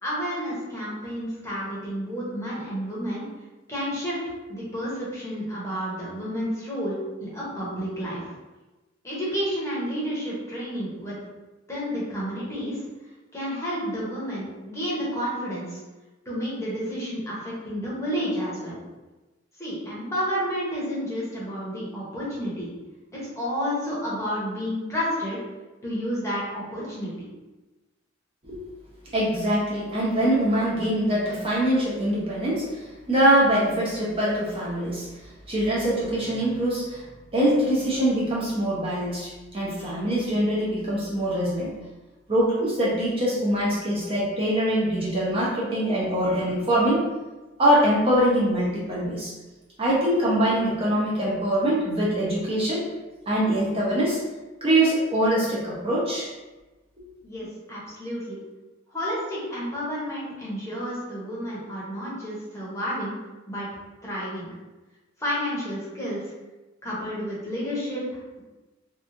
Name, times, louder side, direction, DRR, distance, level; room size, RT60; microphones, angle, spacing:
voice 1, 0.0-3.3 3.7-4.2 4.5-8.3 9.0-11.1 11.7-12.8 13.3-15.8 16.3-18.8 19.6-22.7 23.1-25.4 25.8-27.1 57.2-58.4 58.9-63.1 63.5-63.7 64.0-64.5 65.2-66.2 66.8-68.4, equal, 15° left, -7 dB, 0.8 m, -30 dB
voice 2, 29.1-35.1 35.5-37.0 37.3-41.7 42.3-47.0 47.6-49.3 49.8-52.8 53.3-54.2 54.6-56.3, right 1 dB, 30° right, -6 dB, 0.6 m, -23 dB
2.9 x 2.3 x 2.5 m, 1.1 s
head